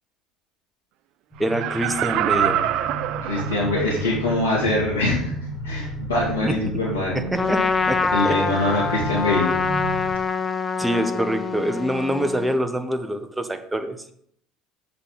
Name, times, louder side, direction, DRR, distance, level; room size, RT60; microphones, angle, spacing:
sound 1, 1.3-10.1, right 1 dB, 5° left, 2.8 m, -33 dB
voice 1, 1.4-2.6 6.4-6.6 7.1-7.6 7.9-8.0 8.2-8.4 10.8-14.0, right 1 dB, 10° right, 7 dB, 1.1 m, -25 dB
Laughter, 1.4-4.1 4.5-4.6, right 10 dB, 60° right, 0.3 m, -25 dB
voice 2, 3.2-5.3 5.6-7.3 8.1-9.5, left 2 dB, 80° left, -8 dB, 2.3 m, -23 dB
Trumpet, 7.4-12.6, left 4 dB, 25° left, 0.6 m, -25 dB
6.7 x 4.7 x 5.6 m, 0.68 s
hypercardioid pair, 65°, 0 cm